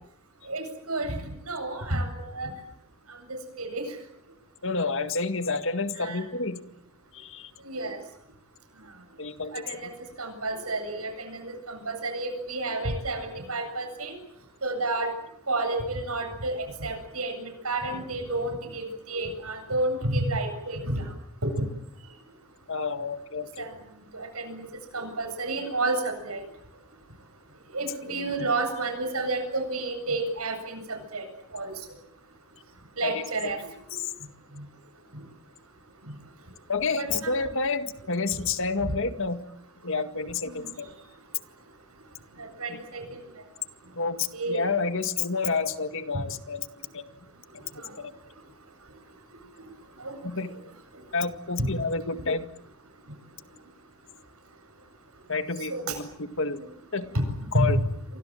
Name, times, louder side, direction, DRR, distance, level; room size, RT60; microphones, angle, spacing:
voice 1, 0.5-2.5 3.1-4.0 5.9-6.2 7.6-8.0 9.5-9.9 10.2-14.2 14.6-15.1 15.5-21.1 23.6-23.7 24.1-24.7 24.9-26.4 27.7-31.2 31.5-31.7 33.0-33.6 33.9-34.0 35.1-35.2 37.0-37.3 40.4-40.6 42.4-43.2 44.3-44.7 47.8-47.9 50.0-50.2 51.6-51.7 55.7-56.0 56.5-56.6 57.1-57.2 57.5-57.8, right 2 dB, 75° right, 6 dB, 8.0 m, -30 dB
voice 2, 4.6-6.6 7.1-7.5 9.2-9.9 22.7-23.7 28.1-28.2 33.0-33.5 33.9-34.1 36.7-39.4 39.8-40.9 42.7-42.8 44.0-46.7 46.9-47.0 47.5-47.6 48.0-48.1 50.2-50.5 51.1-52.5 55.3-56.6 56.9-57.1 57.5-57.8, left 4 dB, 60° left, 9 dB, 2.0 m, -29 dB
28.5 x 25.0 x 7.7 m, 0.74 s
head